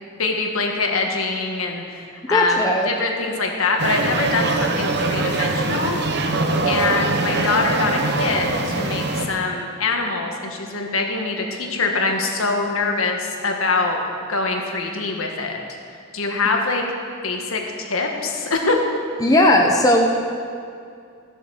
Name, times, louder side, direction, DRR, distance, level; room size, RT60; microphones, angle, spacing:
voice 1, 0.2-6.0 6.7-14.0 14.3-15.6 15.9-16.8 17.2-18.8, left 3 dB, 70° left, 2 dB, 1.6 m, -24 dB
voice 2, 2.3-2.9 19.2-20.1, left 1 dB, 15° left, 1 dB, 0.8 m, -16 dB
sound 1, 3.8-9.3, right 2 dB, 50° right, 1.0 m, -22 dB
14.5 x 8.1 x 6.5 m, 2.3 s
head